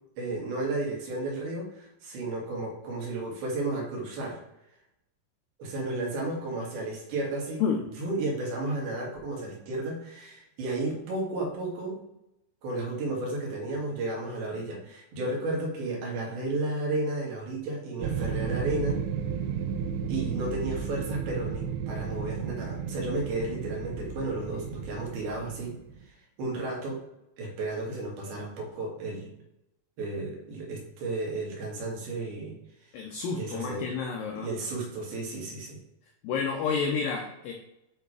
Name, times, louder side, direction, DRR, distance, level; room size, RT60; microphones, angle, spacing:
voice 1, 0.2-4.4 5.6-7.7 8.0-12.0 12.6-19.0 20.1-25.7 26.4-27.0 27.4-29.3 30.0-32.6 33.4-33.9 34.3-35.8, right 2 dB, 65° right, -2 dB, 3.6 m, -33 dB
sound 1, 18.0-25.9, right 6 dB, 90° right, 2.9 m, -33 dB
voice 2, 32.9-34.5 36.2-37.5, left 5 dB, 75° left, 1 dB, 2.1 m, -30 dB
9.3 x 3.5 x 4.8 m, 0.86 s
omnidirectional pair, 4.9 m